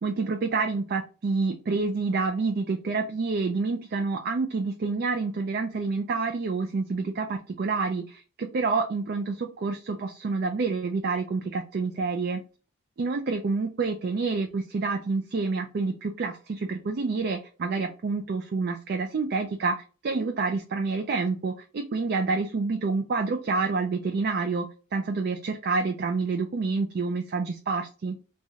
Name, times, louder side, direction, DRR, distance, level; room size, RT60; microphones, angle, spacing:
voice 1, 0.0-12.4 13.0-28.2, right 4 dB, 50° right, 4 dB, 0.4 m, -28 dB
3.1 x 2.3 x 2.7 m, 0.34 s
head